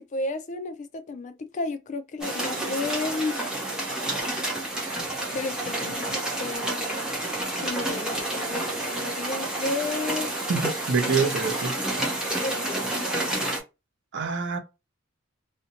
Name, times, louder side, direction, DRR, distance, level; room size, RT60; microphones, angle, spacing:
voice 1, 0.1-3.4 5.3-7.1 7.6-10.3 12.4-13.0, left 3 dB, 35° left, 0.3 m, -33 dB
sound 1, 2.2-13.6, right 1 dB, 5° right, 0.7 m, -29 dB
voice 2, 10.5-11.7 14.1-14.6, right 5 dB, 60° right, 0.5 m, -26 dB
2.5 x 2.1 x 2.8 m
head